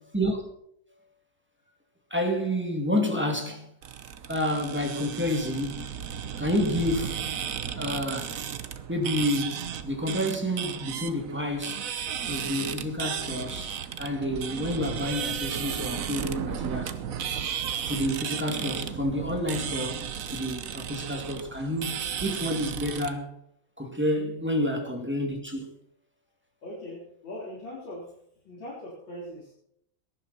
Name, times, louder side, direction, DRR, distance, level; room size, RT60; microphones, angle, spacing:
voice 1, 2.1-3.7 4.3-5.9 6.4-7.3 7.7-8.3 8.9-11.9 12.3-16.9 17.8-23.4 23.8-25.7, equal, 5° right, 2.4 m, -29 dB
sound 1, 3.8-23.1, right 8 dB, 55° right, 1.1 m, -34 dB
voice 2, 26.6-28.1 28.4-29.5, left 1 dB, 80° left, 4.4 m, -41 dB
18.0 x 11.0 x 4.3 m
omnidirectional pair, 2.1 m